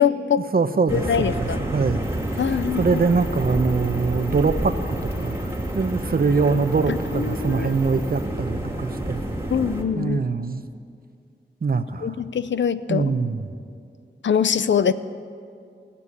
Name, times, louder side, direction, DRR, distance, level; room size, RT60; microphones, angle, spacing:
voice 1, 0.0-0.4 0.9-1.6 2.4-2.9 6.9-7.7 9.5-10.2 12.0-13.1 14.2-14.9, left 7 dB, 80° left, 13 dB, 0.5 m, -23 dB
voice 2, 0.5-2.1 2.3-4.8 5.2-9.2 10.0-10.6 11.6-12.2 12.9-13.6, right 4 dB, 55° right, 10 dB, 0.8 m, -23 dB
sound 1, 0.9-9.8, right 1 dB, 15° right, 2.1 m, -29 dB
sound 2, 2.0-8.2, left 4 dB, 55° left, 4.7 m, -47 dB
18.0 x 7.0 x 9.7 m, 2.3 s
wide cardioid pair, 60°, 19 cm